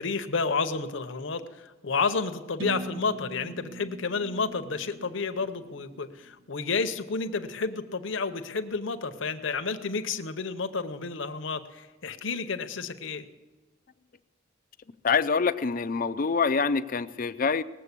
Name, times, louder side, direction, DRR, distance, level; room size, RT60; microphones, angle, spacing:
voice 1, 0.0-13.2, left 4 dB, 65° left, 8 dB, 0.8 m, -31 dB
sound 1, 2.6-6.5, right 2 dB, 70° right, 0.8 m, -41 dB
voice 2, 15.0-17.6, left 5 dB, 45° left, 13 dB, 0.5 m, -25 dB
19.0 x 7.6 x 8.3 m, 1.2 s
head